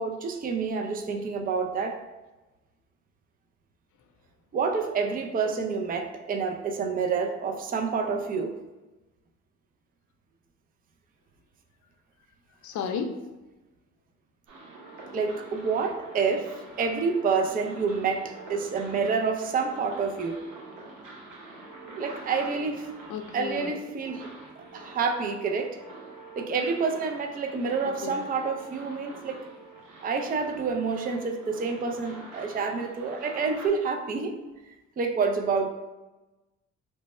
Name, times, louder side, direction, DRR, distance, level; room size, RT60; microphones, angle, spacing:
voice 1, 0.0-2.0 4.5-8.6 15.1-20.4 22.0-22.9 23.3-24.3 24.6-25.8 26.4-29.4 30.0-34.4 34.7-35.7, right 5 dB, 30° right, 4 dB, 0.4 m, -28 dB
voice 2, 12.6-13.2 23.1-23.7 28.0-28.1, left 6 dB, 70° left, 6 dB, 0.5 m, -32 dB
sound 1, 14.5-33.7, right 2 dB, 80° right, 0.9 m, -46 dB
3.2 x 2.1 x 4.1 m, 1.1 s
cardioid pair, 90°, 30 cm